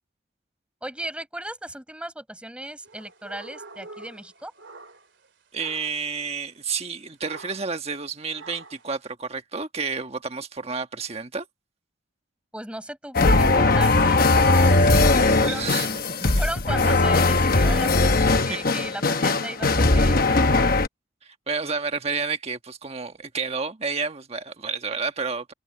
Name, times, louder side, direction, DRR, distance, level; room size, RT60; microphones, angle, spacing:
voice 1, 0.8-4.5 12.5-16.0 16.4-20.8, right 1 dB, 5° right, 7.6 m, -36 dB
sound 1, 2.8-5.3 5.5-6.1 7.2-7.8 8.3-8.9, right 3 dB, 60° right, 3.2 m, -45 dB
voice 2, 5.5-11.5 15.3-16.5 17.7-17.8 18.2-18.6 21.2-25.5, right 5 dB, 30° right, 1.4 m, -31 dB
sound 2, 13.1-20.9, left 3 dB, 45° left, 1.1 m, -19 dB
head